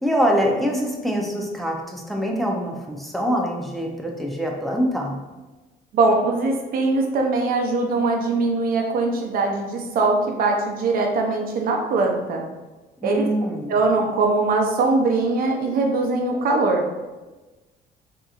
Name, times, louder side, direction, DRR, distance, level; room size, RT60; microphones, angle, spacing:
voice 1, 0.0-5.2 13.0-13.8, equal, ahead, 0 dB, 0.5 m, -24 dB
voice 2, 5.9-12.4 13.0-13.3 13.7-16.8, right 3 dB, 60° right, 2 dB, 0.7 m, -21 dB
3.8 x 2.9 x 2.4 m, 1.2 s
cardioid pair, 110°, 17 cm